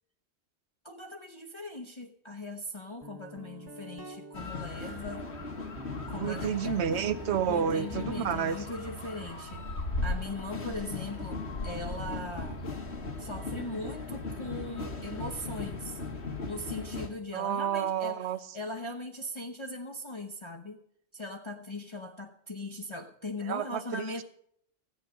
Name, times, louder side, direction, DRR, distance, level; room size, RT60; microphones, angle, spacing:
voice 1, 0.8-5.3 6.1-6.9 7.5-9.7 10.0-12.6 13.2-16.0 16.4-18.3 18.5-20.8 21.1-24.2, left 2 dB, 30° left, 0.8 m, -39 dB
Guitar, 3.0-12.5, right 2 dB, 25° right, 1.0 m, -50 dB
sound 1, 4.3-17.1, left 3 dB, 85° left, 1.8 m, -37 dB
voice 2, 6.2-8.6 17.3-18.4 23.5-24.0, right 8 dB, 85° right, 1.0 m, -30 dB
13.5 x 8.7 x 6.3 m
omnidirectional pair, 1.1 m